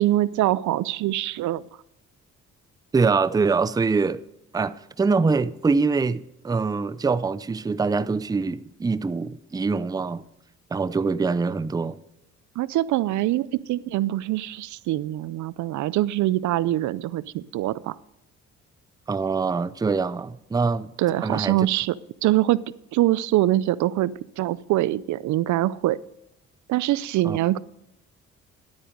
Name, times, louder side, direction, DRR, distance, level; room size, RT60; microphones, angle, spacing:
voice 1, 0.0-1.6 12.6-18.0 21.0-22.0 22.2-22.6 22.9-26.0 26.7-27.6, right 15 dB, 75° right, 0.5 m, -24 dB
voice 2, 2.9-4.2 4.5-10.2 10.7-12.0 19.1-20.9 21.2-21.6 27.2-27.4, right 4 dB, 15° right, 0.4 m, -24 dB
11.0 x 8.9 x 5.2 m
cardioid pair, 90°, 30 cm